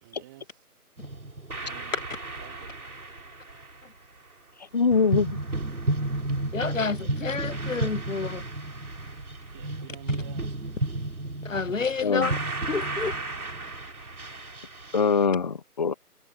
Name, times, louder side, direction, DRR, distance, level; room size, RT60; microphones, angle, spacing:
voice 1, 0.0-0.6 1.6-2.0 2.4-2.9 9.1-10.8, right 17 dB, 15° right, 2.7 m, -50 dB
sound 1, 1.0-3.7 4.9-15.3, right 2 dB, 65° right, 4.6 m, -33 dB
voice 2, 4.7-5.4 12.0-12.3 14.9-15.9, left 5 dB, 25° left, 1.5 m, -23 dB
voice 3, 6.5-8.5 11.4-12.4 12.7-13.1, left 4 dB, 55° left, 0.9 m, -29 dB
figure-of-eight pair, 150°, 47 cm